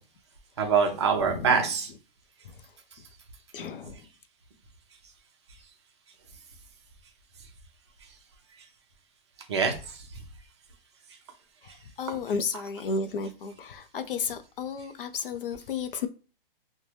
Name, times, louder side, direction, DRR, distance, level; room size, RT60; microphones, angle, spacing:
voice 1, 0.6-1.9 9.5-10.0 12.1-12.2 12.5-12.6, right 6 dB, 30° right, 0.6 m, -25 dB
voice 2, 1.3-1.6 3.5-4.0 12.0-16.1, left 5 dB, 65° left, 0.5 m, -33 dB
2.6 x 2.2 x 3.1 m
hypercardioid pair, 165°, 29 cm